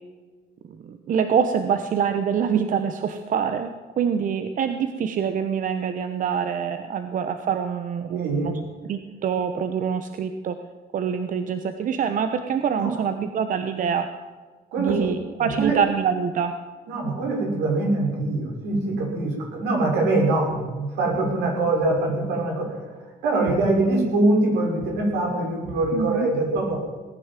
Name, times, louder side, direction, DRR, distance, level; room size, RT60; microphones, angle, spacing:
voice 1, 0.8-3.7 4.0-8.6 8.9-10.6 10.9-14.1 14.8-16.5 25.9-26.3, right 7 dB, 50° right, 9 dB, 1.1 m, -25 dB
voice 2, 8.1-8.5 12.8-13.0 14.7-15.8 16.9-22.8 23.2-26.8, right 2 dB, 80° right, 0 dB, 5.9 m, -23 dB
18.5 x 10.5 x 7.5 m, 1.4 s
cardioid pair, 110°, 17 cm